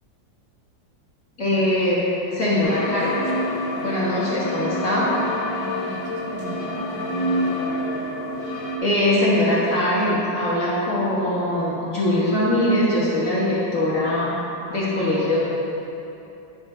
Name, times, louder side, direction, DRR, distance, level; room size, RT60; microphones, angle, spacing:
voice 1, 1.4-2.0 2.3-3.2 3.8-5.1 8.8-14.3 14.7-15.4, left 1 dB, 45° left, -8 dB, 1.9 m, -21 dB
sound 1, 2.6-8.8, left 1 dB, 85° left, 1.6 m, -27 dB
voice 2, 5.5-7.8, right 3 dB, 65° right, -4 dB, 1.7 m, -36 dB
10.5 x 5.9 x 3.2 m, 2.9 s
omnidirectional pair, 2.0 m